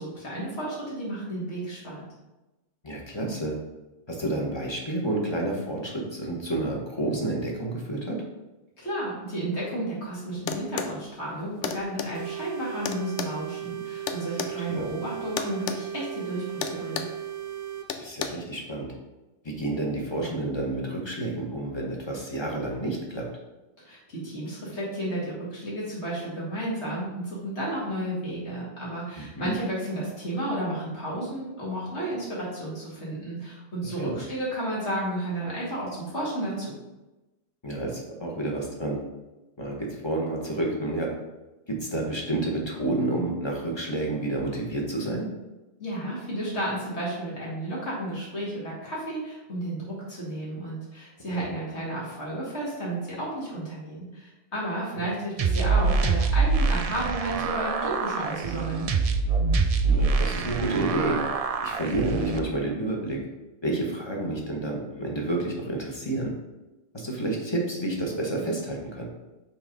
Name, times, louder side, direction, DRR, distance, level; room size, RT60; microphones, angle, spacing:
voice 1, 0.0-2.0 8.8-17.0 23.8-36.7 45.8-58.8, right 1 dB, 65° left, -6 dB, 2.6 m, -32 dB
voice 2, 2.8-3.6 4.1-8.2 14.5-14.9 18.0-18.9 19.4-23.3 29.1-29.5 34.0-34.2 37.6-39.0 39.6-41.1 41.7-45.3 51.3-51.5 59.8-61.2 61.6-63.2 63.6-66.3 66.9-69.1, right 2 dB, 25° left, -1 dB, 1.3 m, -29 dB
sound 1, 10.5-11.0 11.6-12.1 12.8-14.5 15.4-15.8 16.1-16.3 16.6-17.2 17.9-18.3, left 7 dB, 80° left, 0.9 m, -31 dB
sound 2, 12.1-17.9, right 11 dB, 80° right, 0.9 m, -36 dB
sound 3, 55.4-62.4, right 4 dB, 55° right, 0.4 m, -25 dB
6.0 x 3.8 x 5.3 m, 1.0 s
omnidirectional pair, 1.2 m